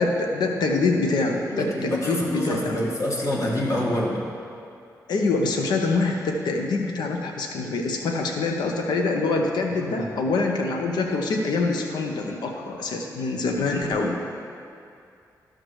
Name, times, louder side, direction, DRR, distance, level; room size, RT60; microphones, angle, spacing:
voice 1, 0.0-2.8 5.1-14.2, left 3 dB, 85° left, 2 dB, 0.7 m, -25 dB
voice 2, 1.5-4.2 9.8-10.1, left 1 dB, 45° left, -3 dB, 1.6 m, -26 dB
12.0 x 6.5 x 3.1 m, 2.5 s
cardioid pair, 70°, 7 cm